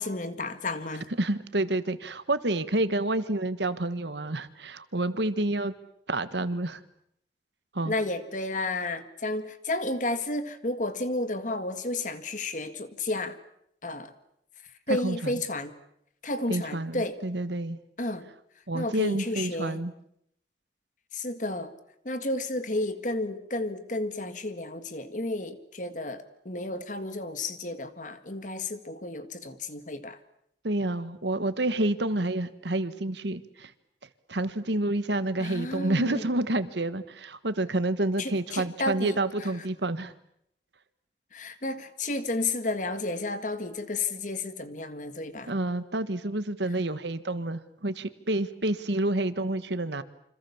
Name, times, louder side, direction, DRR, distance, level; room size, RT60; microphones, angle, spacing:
voice 1, 0.0-1.1 7.8-13.4 13.8-14.1 14.9-15.7 16.2-17.2 18.0-18.3 18.7-19.8 21.1-21.7 22.0-30.2 35.4-36.2 38.2-39.5 41.3-45.5, left 2 dB, 40° left, 1.9 m, -32 dB
voice 2, 1.2-5.7 6.1-6.8 7.7-7.9 14.9-15.4 16.5-17.8 18.7-19.9 30.6-33.7 34.3-40.1 45.5-50.0, right 2 dB, 70° right, 1.5 m, -29 dB
28.0 x 26.0 x 7.2 m
head